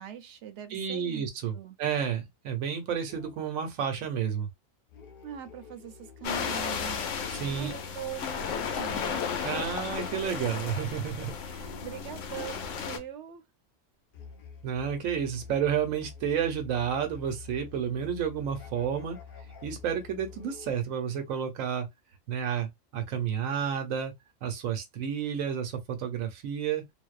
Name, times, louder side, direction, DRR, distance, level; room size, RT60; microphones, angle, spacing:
voice 1, 0.0-1.3 1.5-1.8 5.2-7.1 7.5-9.7 11.4-13.5, right 10 dB, 70° right, 0.8 m, -42 dB
voice 2, 0.7-4.5 7.3-7.7 9.4-11.3 14.6-19.2 19.6-21.9 22.3-24.1 24.4-26.8, right 8 dB, 90° right, 1.1 m, -31 dB
sound 1, 3.1-3.8 4.9-7.8 8.3-9.9 10.8-13.1 14.1-20.7, left 5 dB, 55° left, 0.7 m, -48 dB
sound 2, 6.2-13.0, left 6 dB, 75° left, 0.9 m, -34 dB
2.6 x 2.0 x 2.3 m
omnidirectional pair, 1.4 m